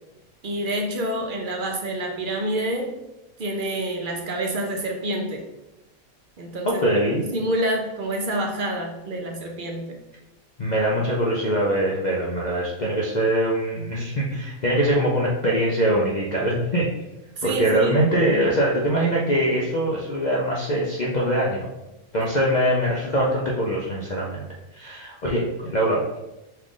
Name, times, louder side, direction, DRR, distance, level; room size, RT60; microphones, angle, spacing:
voice 1, 0.4-2.9 3.4-5.4 6.4-6.8 7.2-10.0 17.4-18.0, right 1 dB, 55° right, 2 dB, 0.5 m, -27 dB
voice 2, 6.6-7.2 10.6-16.8 17.4-21.7 22.1-24.4 24.7-26.2, right 1 dB, 55° left, -4 dB, 0.5 m, -23 dB
5.5 x 2.4 x 3.7 m, 0.97 s
omnidirectional pair, 1.5 m